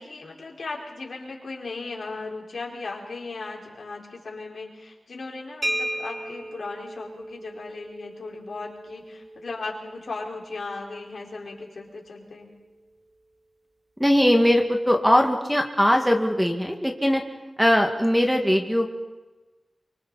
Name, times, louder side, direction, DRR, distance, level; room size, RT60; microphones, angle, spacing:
voice 1, 0.0-12.5, left 3 dB, 70° left, -2 dB, 4.8 m, -37 dB
sound 1, 5.6-13.2, right 1 dB, 35° right, 2.7 m, -37 dB
voice 2, 14.0-17.2 17.6-18.9, equal, ahead, 3 dB, 2.0 m, -20 dB
28.5 x 25.0 x 4.2 m, 1.2 s
wide cardioid pair, 105°, 0 cm